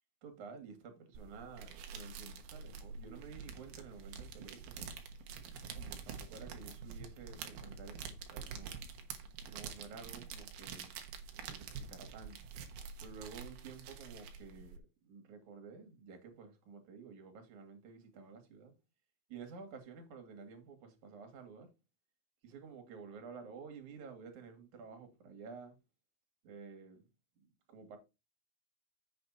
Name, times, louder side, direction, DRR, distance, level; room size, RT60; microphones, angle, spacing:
voice 1, 0.2-5.0 5.6-8.8 9.5-10.9 11.4-12.4 13.0-18.7 19.3-21.7 22.4-25.8 26.4-27.1 27.4-28.0, right 5 dB, 50° right, 3.1 m, -52 dB
sound 1, 1.1-14.8, right 6 dB, 65° right, 2.7 m, -47 dB
8.1 x 6.8 x 4.2 m
omnidirectional pair, 5.5 m